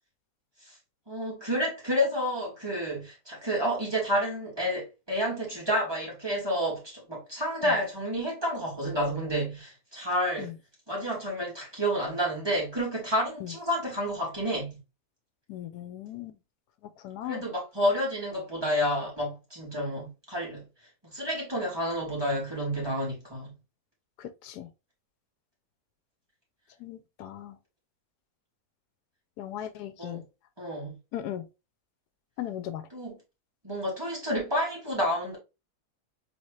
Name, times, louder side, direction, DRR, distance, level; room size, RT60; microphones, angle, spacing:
voice 1, 1.1-10.5 10.9-14.8 17.2-20.6 21.0-23.5 30.0-30.2 30.6-31.0 32.9-33.2 33.6-35.4, equal, 15° right, 2.1 m, -30 dB
voice 2, 15.5-16.4 17.0-17.4 24.2-24.7 26.8-27.6 29.4-30.2 31.1-31.4 32.4-32.8, left 11 dB, 85° left, 1.1 m, -37 dB
4.2 x 3.5 x 3.1 m
omnidirectional pair, 1.7 m